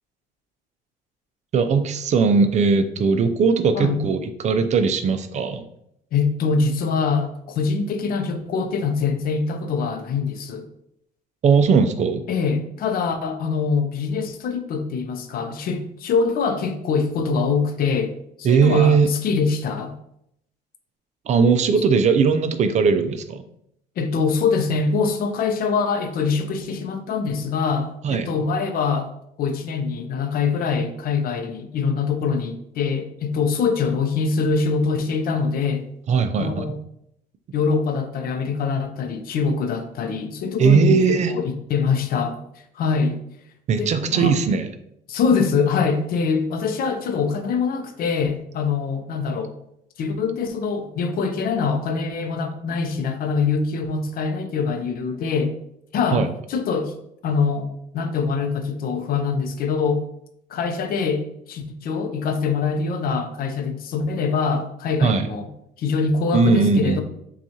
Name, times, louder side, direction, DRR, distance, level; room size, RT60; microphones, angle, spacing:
voice 1, 1.5-5.7 11.4-12.2 18.4-19.1 21.3-23.4 28.0-28.3 36.1-36.7 40.6-41.3 43.7-44.7 56.1-56.3 65.0-65.3 66.3-67.0, right 5 dB, 45° right, 9 dB, 0.4 m, -19 dB
voice 2, 6.1-10.7 12.3-19.9 24.0-29.1 29.4-35.9 36.3-36.8 37.5-42.4 42.7-43.2 43.8-44.4 45.1-49.5 50.0-55.6 55.9-57.0 57.2-57.7 57.9-60.1 60.5-65.5 65.8-67.0, left 5 dB, 60° left, 7 dB, 0.6 m, -24 dB
5.5 x 2.4 x 2.8 m, 0.75 s
cardioid pair, 110°, 17 cm